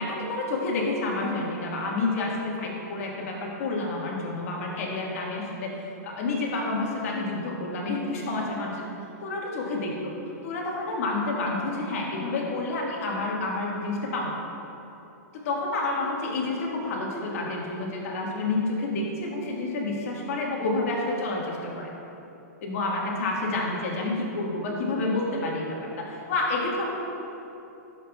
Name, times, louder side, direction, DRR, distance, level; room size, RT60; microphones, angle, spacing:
voice 1, 0.0-5.7 6.0-8.8 9.2-10.1 10.4-14.3 15.4-21.9 22.6-26.8, left 2 dB, 55° left, -2 dB, 1.5 m, -29 dB
11.5 x 5.6 x 2.3 m, 2.9 s
hypercardioid pair, 150°, 9 cm